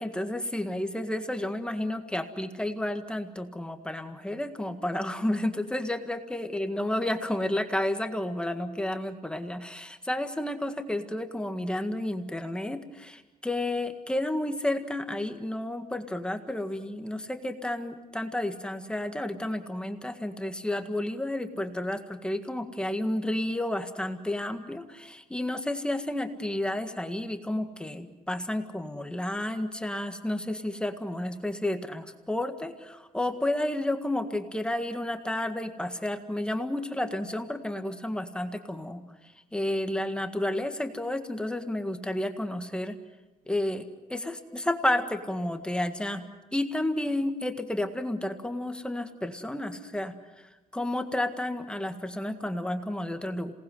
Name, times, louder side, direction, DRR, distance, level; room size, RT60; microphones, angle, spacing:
voice 1, 0.0-39.0 39.5-43.0 43.5-50.2 50.7-53.5, left 1 dB, 5° left, 6 dB, 1.8 m, -31 dB
27.5 x 19.0 x 7.8 m, 1.1 s
cardioid pair, 105°, 14 cm